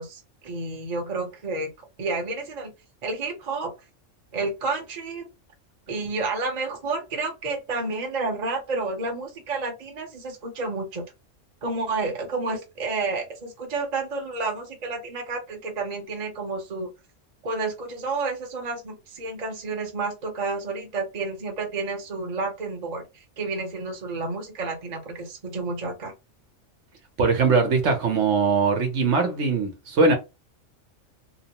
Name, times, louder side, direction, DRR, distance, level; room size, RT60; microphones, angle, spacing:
voice 1, 0.0-1.7 2.0-2.7 3.0-3.7 4.3-5.3 5.9-11.0 11.6-16.9 17.4-26.1, right 3 dB, 40° right, 0.8 m, -30 dB
voice 2, 27.2-30.1, right 4 dB, 70° right, 1.1 m, -21 dB
2.9 x 2.0 x 2.8 m
omnidirectional pair, 1.3 m